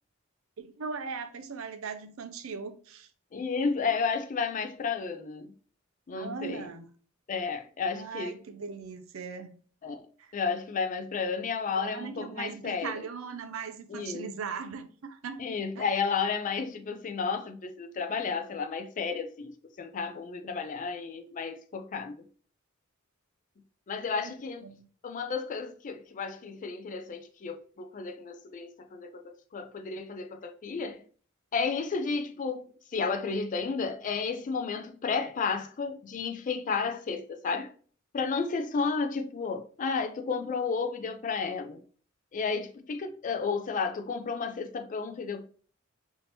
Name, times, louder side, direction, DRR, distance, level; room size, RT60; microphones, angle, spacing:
voice 1, 0.6-3.1 6.1-6.9 7.9-9.5 10.2-10.3 11.7-15.4 15.8-15.9 24.1-24.3 24.6-24.9, right 5 dB, 75° right, 0.5 m, -39 dB
voice 2, 3.3-5.5 6.1-6.7 7.3-8.4 9.8-10.0 10.3-13.0 13.9-14.3 15.4-22.2 23.9-24.7 25.0-31.0 31.5-32.6 32.9-37.7 38.1-41.8 42.3-45.4, left 5 dB, 40° left, 0.4 m, -32 dB
3.4 x 2.7 x 2.9 m
head